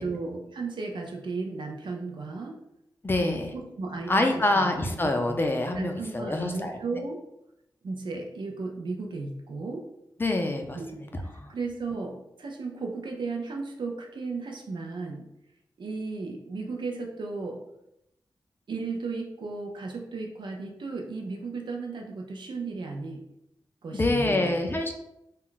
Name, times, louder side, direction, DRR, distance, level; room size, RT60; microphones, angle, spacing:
voice 1, 0.0-2.6 3.2-5.4 5.8-7.2 7.8-9.8 10.7-11.0 11.5-15.2 15.8-17.6 18.7-23.2 23.8-24.5, right 3 dB, 70° right, 1 dB, 0.5 m, -35 dB
voice 2, 3.0-3.5 4.1-6.8 10.2-11.5 23.9-24.9, left 2 dB, 25° left, 4 dB, 0.4 m, -26 dB
2.2 x 2.1 x 3.8 m, 0.84 s
cardioid pair, 65°, 8 cm